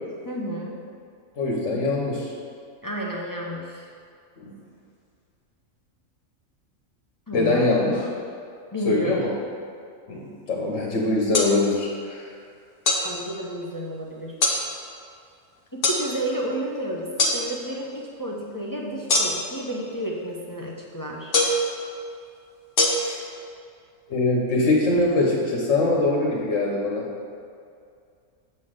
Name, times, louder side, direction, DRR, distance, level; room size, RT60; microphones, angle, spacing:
voice 1, 0.3-0.8 2.8-3.9 7.3-7.7 8.7-9.2 13.0-14.3 15.7-21.3, right 1 dB, 25° left, -2 dB, 0.4 m, -31 dB
voice 2, 1.4-2.3 4.4-4.5 7.3-8.1 8.9-9.3 10.1-12.3 23.0-23.2 24.1-27.0, left 2 dB, 65° left, -2 dB, 1.3 m, -23 dB
sound 1, 11.3-11.5 12.9-13.0 14.4-14.6 15.8-16.0 17.2-17.4 19.1-19.5 21.3-21.6 22.8-22.9, left 2 dB, 50° left, 0.9 m, -20 dB
7.4 x 3.9 x 6.4 m, 2.3 s
omnidirectional pair, 1.4 m